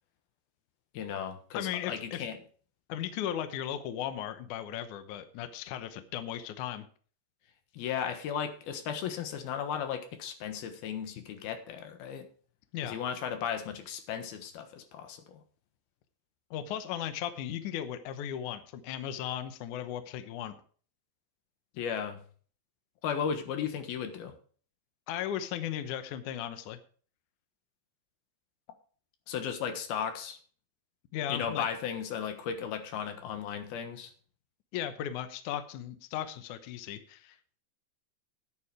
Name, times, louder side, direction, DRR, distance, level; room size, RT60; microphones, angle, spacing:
voice 1, 0.9-2.4 7.7-12.3 12.8-15.4 21.7-22.2 23.0-24.3 29.3-30.4 31.3-34.1, left 7 dB, 85° left, 7 dB, 3.3 m, -35 dB
voice 2, 1.5-2.3 2.9-6.9 12.7-13.0 16.5-20.6 25.1-26.8 31.1-31.7 34.7-37.4, left 10 dB, 70° left, 10 dB, 2.1 m, -36 dB
10.0 x 9.7 x 4.8 m, 0.43 s
omnidirectional pair, 4.3 m